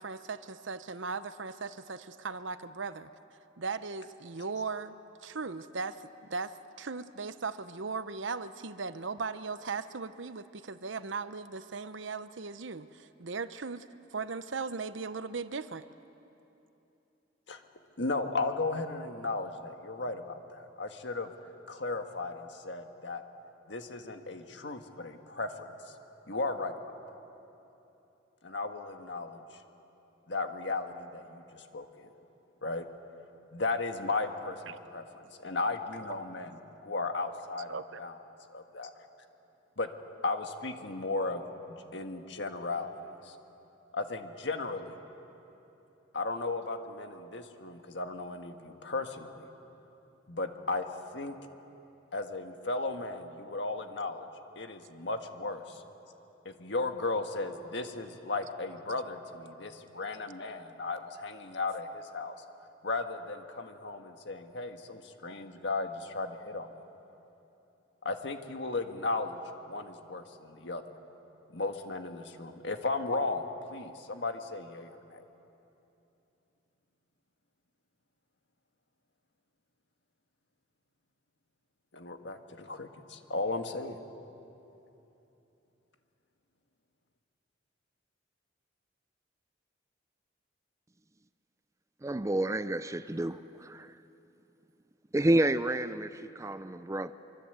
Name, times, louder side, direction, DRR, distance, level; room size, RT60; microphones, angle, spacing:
voice 1, 0.0-3.1 3.6-4.9 5.2-13.9 14.1-15.9 34.7-34.8 36.0-36.1 37.7-38.0, right 4 dB, 80° right, 12 dB, 0.9 m, -38 dB
voice 2, 18.0-21.3 21.7-23.2 23.7-25.7 26.3-26.7 28.4-29.4 30.3-32.1 32.6-32.9 33.5-36.5 36.8-38.2 38.5-38.9 39.8-39.9 40.2-42.9 43.2-43.4 43.9-45.0 46.1-49.5 50.3-50.9 51.1-51.4 52.1-54.3 54.6-55.8 56.5-62.4 62.8-66.7 68.1-71.0 71.5-75.2 81.9-84.0, left 3 dB, 65° left, 6 dB, 1.7 m, -35 dB
voice 3, 92.0-93.9 95.1-97.1, right 1 dB, 15° right, 13 dB, 0.5 m, -29 dB
25.0 x 24.5 x 8.1 m, 3.0 s
head